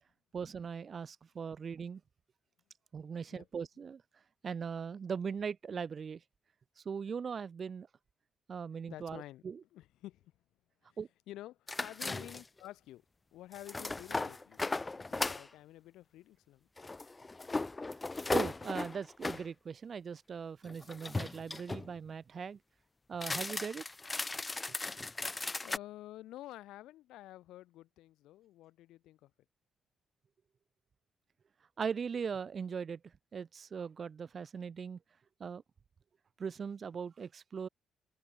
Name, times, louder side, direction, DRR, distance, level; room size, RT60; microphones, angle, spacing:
voice 1, 0.3-2.0 2.9-4.0 4.4-6.2 6.8-7.9 8.5-9.6 11.0-11.1 18.1-22.6 23.1-23.8 31.8-33.0 33.3-35.0 35.4-35.6 36.4-37.7, right 6 dB, 45° right, 1.6 m, -39 dB
voice 2, 8.8-9.4 9.7-10.3 10.8-11.0 11.3-13.1 13.3-14.6 15.1-16.7 25.6-29.3, left 15 dB, 90° left, 7.1 m, -50 dB
sound 1, 11.7-12.6 13.5-15.5 16.8-19.4 20.7-21.9 23.1-25.8, left 3 dB, 20° left, 3.0 m, -37 dB
cardioid pair, 90°, 0 cm